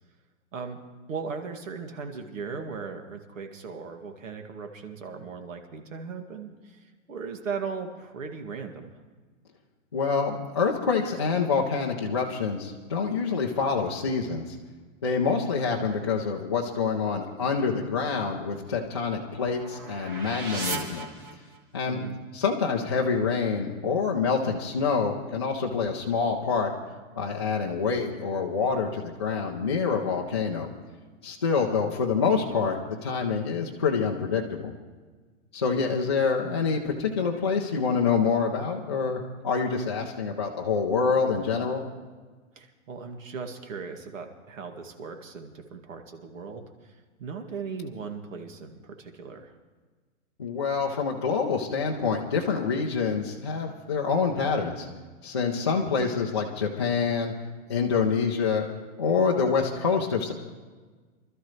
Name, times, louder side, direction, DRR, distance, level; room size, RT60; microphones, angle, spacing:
voice 1, 1.1-9.0 21.9-22.2 31.5-31.7 35.7-36.0 42.6-49.5, right 5 dB, 75° right, 4 dB, 2.3 m, -38 dB
voice 2, 9.9-14.6 15.0-21.1 21.7-22.0 22.3-26.7 27.2-30.7 31.2-34.7 35.5-41.8 50.4-54.9 55.2-57.3 57.7-58.7 59.0-60.3, left 5 dB, 20° left, -4 dB, 0.5 m, -26 dB
sound 1, 18.4-21.8, right 3 dB, 15° right, 0.9 m, -38 dB
25.0 x 13.0 x 3.2 m, 1.4 s
hypercardioid pair, 175°, 39 cm